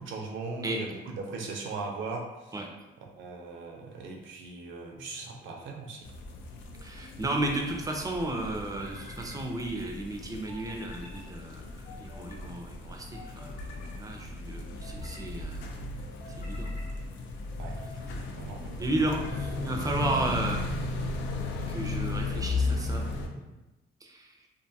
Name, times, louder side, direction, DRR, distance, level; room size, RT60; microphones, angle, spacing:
voice 1, 0.0-2.6 3.1-6.1 17.6-17.7 18.3-18.8, right 3 dB, 75° right, 1 dB, 0.6 m, -39 dB
sound 1, 5.0-5.6 7.0-7.8 8.6-9.4 10.5-11.2 11.8-12.5 13.1-14.0 14.6-15.3 16.0-16.9 17.5-18.0 18.8-19.6, left 1 dB, 40° left, 0.7 m, -50 dB
sound 2, 6.0-23.3, left 3 dB, 70° left, 0.4 m, -36 dB
voice 2, 6.8-11.6 12.0-13.6 14.0-15.6 16.4-16.7 18.8-20.7 21.7-23.0 24.0-24.3, right 2 dB, 20° right, 1 dB, 0.5 m, -33 dB
2.5 x 2.3 x 2.7 m, 1.0 s
cardioid pair, 90°, 20 cm